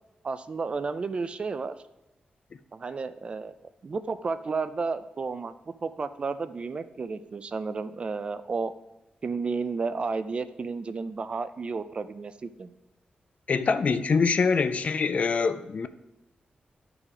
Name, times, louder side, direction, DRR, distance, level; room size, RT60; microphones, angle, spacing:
voice 1, 0.2-1.8 2.7-3.5 3.8-5.5 5.8-8.7 9.2-12.7, right 4 dB, 35° right, 12 dB, 0.4 m, -32 dB
voice 2, 13.5-15.9, left 5 dB, 45° left, 12 dB, 0.4 m, -24 dB
12.0 x 4.9 x 4.9 m, 0.96 s
wide cardioid pair, 180°, 3 cm